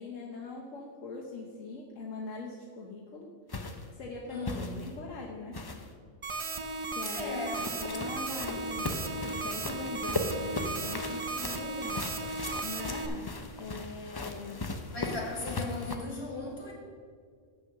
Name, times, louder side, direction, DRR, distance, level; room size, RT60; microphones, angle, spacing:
voice 1, 0.0-3.3 3.9-4.5 4.8-5.6 6.9-7.4 7.8-12.1 12.6-14.7, left 3 dB, 80° left, -2 dB, 1.3 m, -42 dB
sound 1, 3.5-3.9 4.5-5.0 5.5-5.9 7.5-16.0, left 2 dB, 30° left, 0.4 m, -38 dB
voice 2, 4.3-4.8 7.1-7.7 14.9-16.7, left 3 dB, 55° left, -2 dB, 2.4 m, -37 dB
sound 2, 6.2-13.1, right 3 dB, 55° right, 0.3 m, -36 dB
7.8 x 6.5 x 6.5 m, 2.1 s
omnidirectional pair, 1.3 m